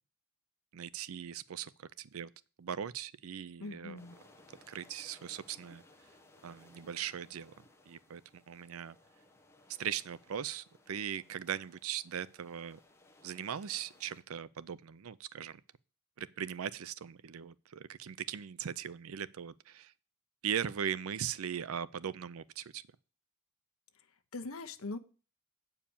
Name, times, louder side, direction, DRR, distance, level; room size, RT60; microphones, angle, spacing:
voice 1, 0.7-1.7 2.0-2.3 2.6-4.0 4.7-5.8 6.4-9.0 9.8-12.8 13.2-15.6 16.2-19.9 20.4-22.8, right 8 dB, 80° right, 0.5 m, -39 dB
voice 2, 3.6-4.2 24.3-25.0, left 3 dB, 75° left, 1.0 m, -41 dB
sound 1, 3.9-14.2, left 2 dB, 10° left, 1.2 m, -62 dB
8.6 x 4.7 x 7.0 m
head